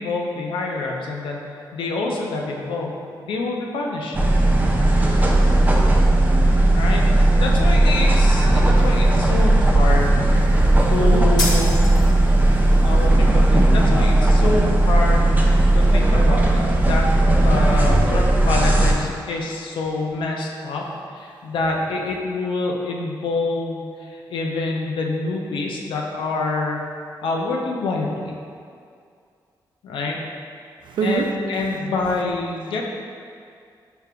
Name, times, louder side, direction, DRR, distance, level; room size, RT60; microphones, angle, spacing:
voice 1, 0.0-4.2 6.7-7.0 7.4-10.2 10.9-11.8 12.8-15.3 15.7-16.4 16.9-17.1 17.4-20.8 21.1-26.8 27.2-28.3 29.8-30.2 31.0-32.8, left 3 dB, 85° left, 0 dB, 0.5 m, -26 dB
sound 1, 4.1-18.9, right 1 dB, 20° right, 0.6 m, -16 dB
voice 2, 10.4-11.3 12.2-12.9 15.6-15.8 30.9-31.3, right 6 dB, 75° right, 3 dB, 0.4 m, -28 dB
sound 2, 11.4-12.4, left 1 dB, 50° left, 1.1 m, -27 dB
5.0 x 3.4 x 2.2 m, 2.3 s
cardioid pair, 60°, 8 cm